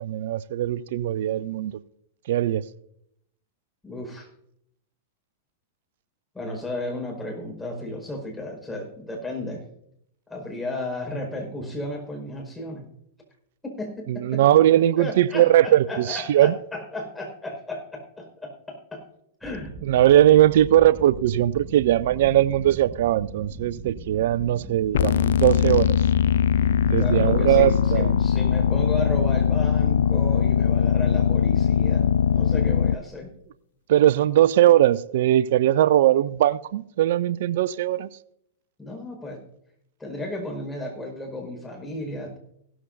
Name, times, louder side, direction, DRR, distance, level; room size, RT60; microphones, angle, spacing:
voice 1, 0.0-1.8 2.3-2.6 14.1-16.5 19.8-26.0 26.8-28.1 33.9-38.1, right 12 dB, 60° right, 0.5 m, -20 dB
voice 2, 3.8-4.3 6.3-9.6 10.3-12.9 13.6-14.4 15.0-19.0 19.4-19.7 26.9-33.3 38.8-39.4 40.0-42.4, left 1 dB, 10° left, 5.1 m, -34 dB
sound 1, 19.4-28.9, right 3 dB, 15° right, 1.4 m, -40 dB
sound 2, 24.9-33.0, left 8 dB, 65° left, 0.4 m, -21 dB
16.0 x 14.0 x 2.7 m
figure-of-eight pair, 100°, 0 cm